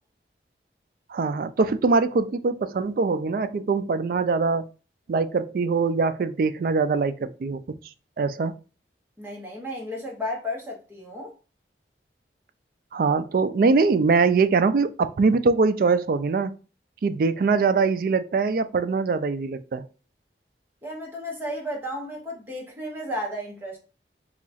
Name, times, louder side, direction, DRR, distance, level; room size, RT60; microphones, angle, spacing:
voice 1, 1.1-4.7 5.1-7.6 8.2-8.5 12.9-16.5 17.0-19.8, right 4 dB, 50° right, 0.3 m, -22 dB
voice 2, 9.2-11.3 20.8-23.8, left 1 dB, 10° right, 0.9 m, -33 dB
2.9 x 2.3 x 4.0 m
head